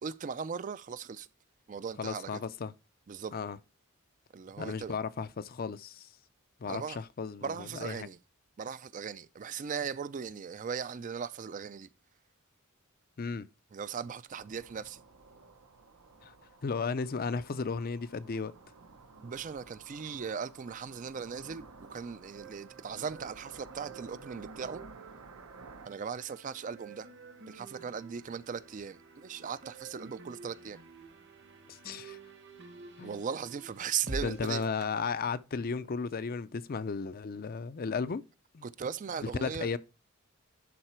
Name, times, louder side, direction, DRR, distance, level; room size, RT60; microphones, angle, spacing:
voice 1, 0.0-1.3 1.7-2.4 3.1-3.3 4.3-4.9 6.7-7.0 7.4-8.2 8.6-11.9 13.7-15.0 19.2-24.8 25.9-27.1 27.5-30.8 33.0-34.6 38.6-39.7, right 6 dB, 35° right, 0.4 m, -38 dB
voice 2, 2.0-2.7 3.3-3.6 4.6-6.1 6.6-8.1 13.2-13.5 16.2-16.3 16.6-18.5 31.7-32.2 33.0-33.2 34.2-38.2 38.5-38.7 39.4-39.8, left 5 dB, 40° left, 0.4 m, -35 dB
sound 1, 14.3-25.9, right 4 dB, 85° right, 1.0 m, -53 dB
sound 2, 22.3-34.8, right 2 dB, 55° right, 1.3 m, -48 dB
11.0 x 4.1 x 4.4 m
head